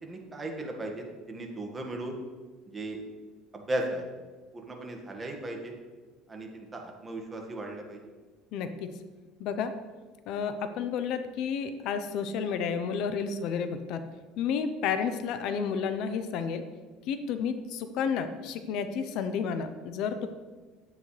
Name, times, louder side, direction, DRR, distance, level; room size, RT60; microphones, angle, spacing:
voice 1, 0.0-2.2 2.7-3.0 3.5-4.0 4.5-5.7 6.3-8.0, right 1 dB, 20° right, 1 dB, 1.8 m, -36 dB
voice 2, 8.5-8.9 9.4-9.7 10.3-14.0 14.4-16.6 17.1-20.3, left 6 dB, 65° left, 9 dB, 0.7 m, -31 dB
11.0 x 9.2 x 3.3 m, 1.4 s
cardioid pair, 120°, 0 cm